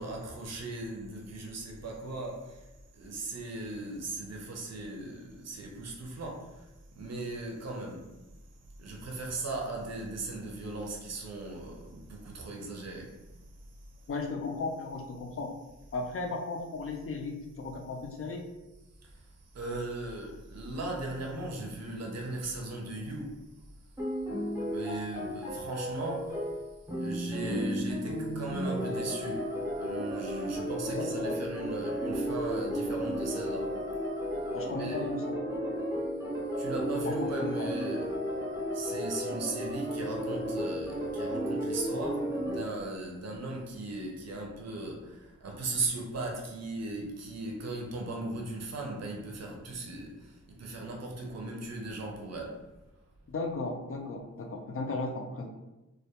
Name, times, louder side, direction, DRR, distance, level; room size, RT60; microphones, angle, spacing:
voice 1, 0.0-8.2 8.8-14.1 19.0-23.7 24.7-26.6 27.0-33.9 34.7-35.0 36.5-38.4 38.7-52.7, right 2 dB, 60° right, 0.5 m, -38 dB
voice 2, 14.1-15.5 15.9-18.5 30.9-31.3 34.5-35.6 37.1-37.5 53.3-55.5, left 3 dB, 50° left, 0.4 m, -36 dB
sound 1, 24.0-42.6, equal, 10° right, 0.6 m, -33 dB
2.2 x 2.1 x 2.8 m
wide cardioid pair, 115°, 29 cm